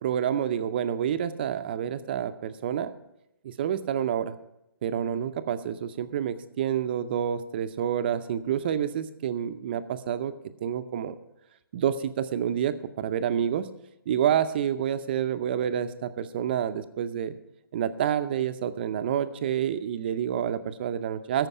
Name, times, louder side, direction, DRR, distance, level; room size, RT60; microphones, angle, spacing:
voice 1, 0.0-2.9 3.4-4.3 4.8-10.3 10.6-11.2 11.7-13.7 14.1-17.3 17.7-21.5, right 9 dB, 25° right, 11 dB, 0.5 m, -28 dB
13.5 x 5.2 x 8.2 m, 0.86 s
hypercardioid pair, 155°, 12 cm